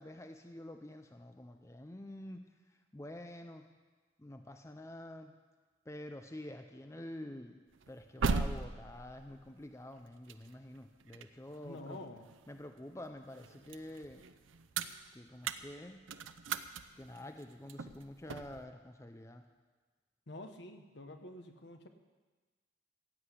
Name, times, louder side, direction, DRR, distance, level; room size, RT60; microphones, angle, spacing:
voice 1, 0.0-2.5 2.9-3.7 4.2-5.3 5.9-7.6 7.9-12.0 12.5-14.2 15.1-16.0 17.0-19.4, left 1 dB, 15° left, 6 dB, 0.5 m, -48 dB
sound 1, 7.7-12.8 13.2-18.6, right 4 dB, 90° right, 0.6 m, -39 dB
voice 2, 11.6-12.3 20.3-21.9, left 1 dB, 65° left, 6 dB, 1.2 m, -48 dB
15.5 x 8.0 x 8.2 m, 1.3 s
head